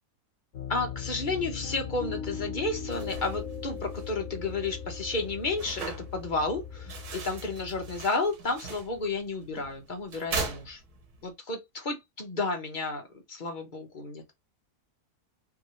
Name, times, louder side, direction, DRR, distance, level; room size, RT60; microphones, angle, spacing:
Piano, 0.5-8.0, left 6 dB, 65° left, 1.5 m, -39 dB
voice 1, 0.7-10.8 11.2-14.3, left 3 dB, 40° left, 0.9 m, -32 dB
sound 1, 2.7-11.3, right 4 dB, 85° right, 1.6 m, -41 dB
3.6 x 2.6 x 3.0 m
omnidirectional pair, 1.6 m